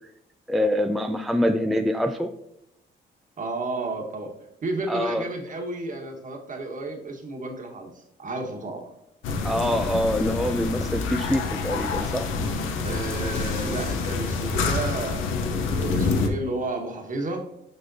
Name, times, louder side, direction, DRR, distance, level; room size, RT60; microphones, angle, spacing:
voice 1, 0.5-2.3 4.9-5.2 9.4-12.3, left 1 dB, ahead, 6 dB, 0.3 m, -25 dB
voice 2, 3.4-4.3 4.6-8.9 12.8-15.3 15.7-17.4, right 2 dB, 40° right, 3 dB, 1.3 m, -32 dB
sound 1, 9.2-16.3, left 4 dB, 85° left, 0.8 m, -27 dB
6.5 x 5.5 x 2.6 m, 0.83 s
cardioid pair, 90°, 20 cm